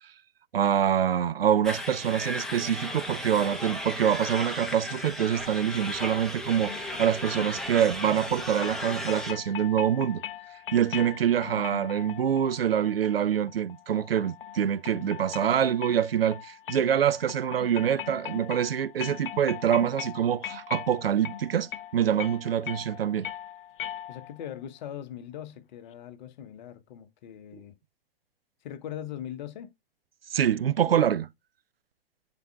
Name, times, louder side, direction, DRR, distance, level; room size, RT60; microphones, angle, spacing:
voice 1, 0.5-10.2 10.7-23.3 30.3-31.3, right 9 dB, 75° right, 0.4 m, -25 dB
sound 1, 1.6-9.3, left 1 dB, ahead, 1.0 m, -35 dB
sound 2, 6.6-24.5, left 10 dB, 65° left, 0.5 m, -41 dB
voice 2, 24.1-27.8 28.6-29.7 30.8-31.0, left 10 dB, 50° left, 1.0 m, -40 dB
10.5 x 4.2 x 2.3 m
figure-of-eight pair, 100°, 30 cm